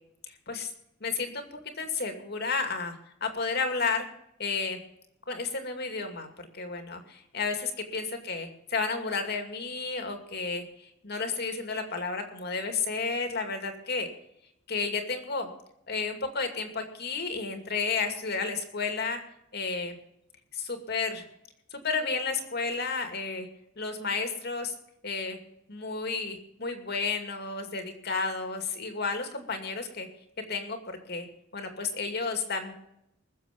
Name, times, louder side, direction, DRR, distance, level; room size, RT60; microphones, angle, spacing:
voice 1, 0.3-0.7 1.0-4.1 4.4-4.8 5.3-14.1 14.7-15.5 15.9-19.2 19.5-20.0 20.5-21.2 21.7-23.5 23.8-24.7 25.0-25.4 25.7-30.1 30.5-31.3 31.5-32.7, left 4 dB, 55° left, 5 dB, 2.5 m, -32 dB
21.5 x 7.4 x 5.3 m, 0.78 s
head